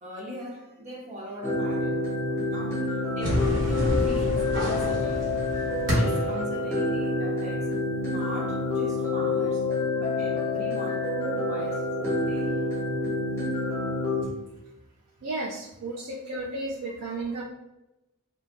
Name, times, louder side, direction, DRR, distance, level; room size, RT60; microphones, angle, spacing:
voice 1, 0.0-5.2 5.8-7.7 8.1-9.6 10.0-12.6 15.9-16.0, right 1 dB, 35° right, -3 dB, 0.8 m, -40 dB
sound 1, 1.4-14.2, left 3 dB, 10° left, 0.7 m, -28 dB
sound 2, 3.2-6.4, equal, 55° right, 1.1 m, -28 dB
voice 2, 15.2-17.4, right 2 dB, 85° right, -2 dB, 0.4 m, -33 dB
2.9 x 2.2 x 2.5 m, 0.95 s
head